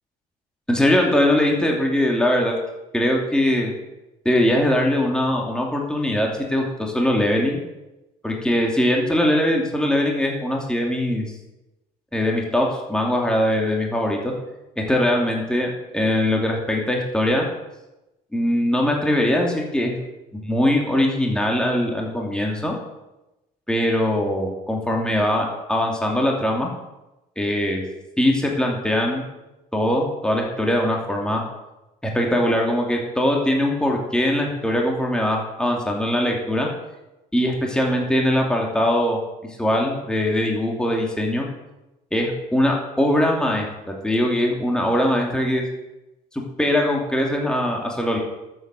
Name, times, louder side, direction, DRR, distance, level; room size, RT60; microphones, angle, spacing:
voice 1, 0.7-2.5 2.9-3.7 4.2-7.6 8.2-11.2 12.1-14.3 14.8-15.7 15.9-17.5 18.3-19.9 20.4-22.7 23.7-26.7 27.4-27.8 28.2-29.3 29.7-31.4 32.1-36.7 37.3-39.2 39.6-41.5 42.1-45.6 46.6-48.2, left 1 dB, 5° left, 0 dB, 2.8 m, -21 dB
12.5 x 8.0 x 7.6 m, 0.98 s
cardioid pair, 110°, 17 cm